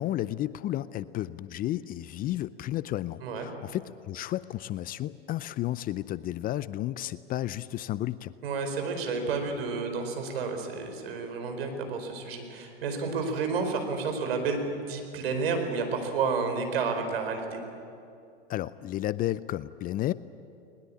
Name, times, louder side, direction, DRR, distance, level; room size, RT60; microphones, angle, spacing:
voice 1, 0.0-8.3 18.5-20.1, left 14 dB, 30° left, 17 dB, 0.5 m, -32 dB
voice 2, 8.4-17.6, right 4 dB, 70° right, 5 dB, 4.6 m, -30 dB
21.0 x 20.5 x 8.6 m, 2.6 s
hypercardioid pair, 105°, 31 cm